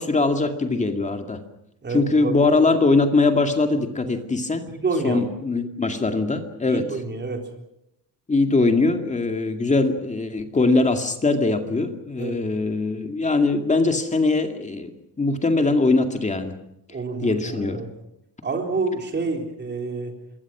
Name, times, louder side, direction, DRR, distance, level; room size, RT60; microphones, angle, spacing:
voice 1, 0.0-1.4 1.9-4.7 5.0-6.8 8.3-14.9 15.2-16.5 17.2-17.8, left 3 dB, 20° left, 5 dB, 2.2 m, -21 dB
voice 2, 1.8-2.5 4.7-5.3 6.7-7.4 12.2-12.4 16.9-17.9 18.4-20.1, right 3 dB, 25° right, 3 dB, 3.9 m, -28 dB
26.5 x 22.0 x 6.1 m, 0.80 s
cardioid pair, 175°, 38 cm